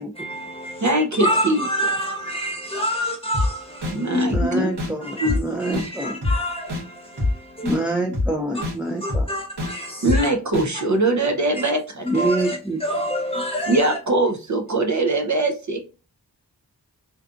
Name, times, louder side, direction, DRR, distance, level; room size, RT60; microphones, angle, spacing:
voice 1, 0.0-4.2 5.0-7.9 8.5-8.6 9.0-10.3 11.5-11.7 12.1-14.0, equal, 15° left, 1.1 m, -28 dB
voice 2, 0.8-1.6 3.9-4.7 5.2-5.4 5.7-5.8 10.0-12.2 13.7-15.8, right 2 dB, 50° right, 0.6 m, -22 dB
sound 1, 3.3-3.5 3.8-3.9 4.3-4.4 4.8-4.9 5.3-5.4 5.7-5.9 6.2-6.3 6.7-6.8 7.2-7.3 7.7-7.8 8.1-8.3 8.6-8.7 9.1-9.2 9.6-9.7 10.1-10.2 10.5-10.7, left 2 dB, 85° right, 1.1 m, -23 dB
voice 3, 4.1-6.2 7.6-9.3 12.0-12.8, right 1 dB, 5° right, 0.4 m, -25 dB
2.6 x 2.3 x 2.4 m
wide cardioid pair, 40°, 39 cm